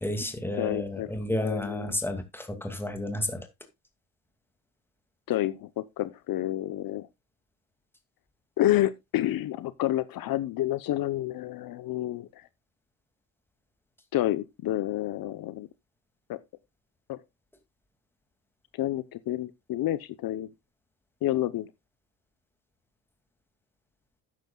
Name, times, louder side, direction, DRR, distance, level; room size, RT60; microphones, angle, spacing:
voice 1, 0.0-3.5, left 1 dB, 5° left, 2.3 m, -31 dB
voice 2, 0.6-1.1 1.4-2.0 5.3-7.1 8.6-12.3 14.1-15.7 16.3-16.4 17.1-17.2 18.8-20.5 21.2-21.7, left 14 dB, 65° left, 0.8 m, -29 dB
13.0 x 9.4 x 2.3 m
cardioid pair, 130°, 38 cm